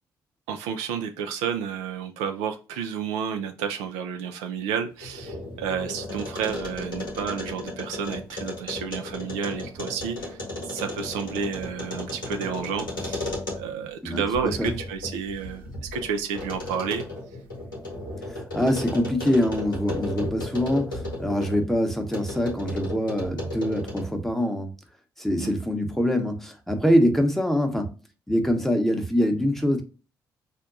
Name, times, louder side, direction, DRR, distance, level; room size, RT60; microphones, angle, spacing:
voice 1, 0.5-10.4 10.7-17.1 25.4-25.5, right 7 dB, 70° right, 0.4 m, -31 dB
sound 1, 4.9-13.9 14.3-21.6 22.1-24.2, left 2 dB, 85° left, 0.8 m, -35 dB
voice 2, 14.0-14.7 18.3-24.7 25.2-28.0 28.3-29.8, equal, 5° left, 0.8 m, -24 dB
5.0 x 2.2 x 2.5 m
figure-of-eight pair, 40°, 11 cm